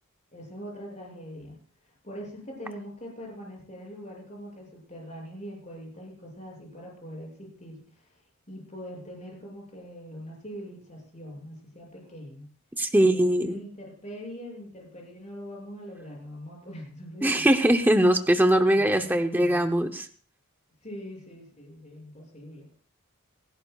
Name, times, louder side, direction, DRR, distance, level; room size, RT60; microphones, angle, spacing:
voice 1, 0.3-1.6 1.8-8.1 8.5-12.5 12.9-17.5 18.0-18.1 18.7-19.7 20.8-22.7, equal, 30° left, -2 dB, 6.7 m, -42 dB
voice 2, 12.8-13.6 17.2-20.1, right 1 dB, 10° right, 6 dB, 0.6 m, -21 dB
28.0 x 11.5 x 2.3 m, 0.43 s
head